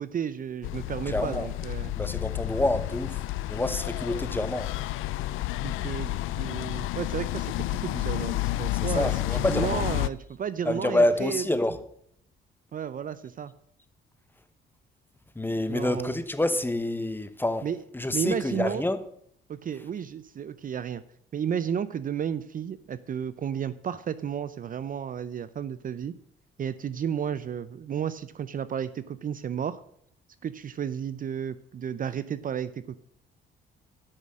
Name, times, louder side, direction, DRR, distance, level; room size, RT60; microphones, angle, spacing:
voice 1, 0.0-1.9 5.6-11.4 12.7-13.5 15.7-16.2 17.6-17.8 18.1-18.8 19.5-21.0 21.3-26.1 26.6-29.8 30.4-33.0, right 8 dB, 45° right, 0.5 m, -32 dB
sound 1, 0.6-10.1, left 16 dB, 85° left, 0.4 m, -30 dB
voice 2, 1.1-1.5 2.0-4.7 8.7-9.8 10.6-11.8 15.3-17.7 17.9-19.0, left 1 dB, 10° left, 1.0 m, -27 dB
8.9 x 6.3 x 7.4 m
cardioid pair, 90°, 20 cm